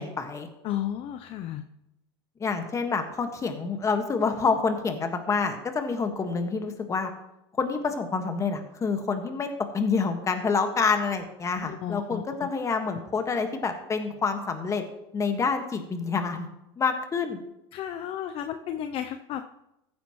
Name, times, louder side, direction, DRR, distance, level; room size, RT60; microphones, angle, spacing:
voice 1, 0.0-0.5 2.4-7.1 7.6-14.8 15.1-16.5 16.8-17.4, left 5 dB, 25° left, 6 dB, 1.7 m, -27 dB
voice 2, 0.6-1.6 11.6-12.5 12.9-13.0 17.7-19.4, left 10 dB, 45° left, 8 dB, 0.6 m, -33 dB
14.5 x 9.6 x 3.1 m, 0.86 s
supercardioid pair, 110°, 13 cm